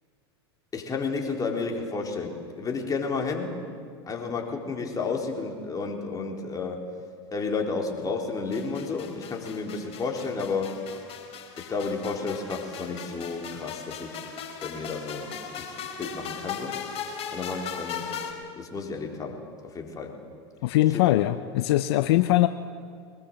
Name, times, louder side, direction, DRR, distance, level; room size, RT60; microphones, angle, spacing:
voice 1, 0.7-3.6 4.0-6.8 7.3-10.7 11.6-14.2 14.6-16.8 17.3-18.1 18.6-20.2 20.9-21.0, left 4 dB, 25° left, 1 dB, 4.1 m, -32 dB
sound 1, 8.5-18.3, left 7 dB, 45° left, 4.8 m, -38 dB
voice 2, 20.6-22.5, left 16 dB, 70° left, 11 dB, 0.7 m, -21 dB
23.0 x 20.5 x 7.7 m, 2.2 s
hypercardioid pair, 95°, 14 cm